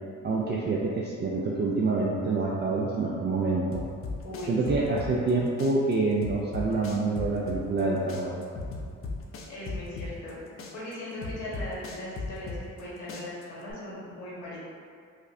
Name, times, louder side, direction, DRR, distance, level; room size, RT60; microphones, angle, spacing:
voice 1, 0.2-3.8 4.5-8.4, right 3 dB, 35° right, -3 dB, 0.4 m, -27 dB
sound 1, 3.7-5.3 5.6-7.8 8.1-10.3 10.6-12.8 13.1-13.7, left 3 dB, 45° left, 0.5 m, -36 dB
voice 2, 4.2-4.9 9.5-14.6, left 1 dB, 75° left, -6 dB, 1.2 m, -39 dB
4.9 x 2.1 x 2.6 m, 2.3 s
cardioid pair, 90°, 30 cm